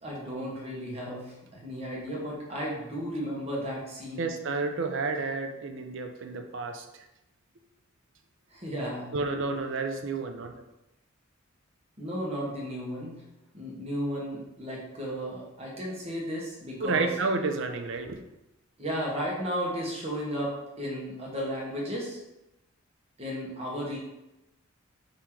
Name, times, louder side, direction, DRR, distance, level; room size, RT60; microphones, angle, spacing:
voice 1, 0.0-4.3 8.5-9.1 12.0-13.1 13.5-17.1 18.8-22.2 23.2-24.0, equal, 30° right, -3 dB, 1.2 m, -34 dB
voice 2, 4.2-6.9 9.1-10.6 16.8-18.2, right 3 dB, 60° right, 6 dB, 0.5 m, -30 dB
3.8 x 3.0 x 4.4 m, 0.93 s
head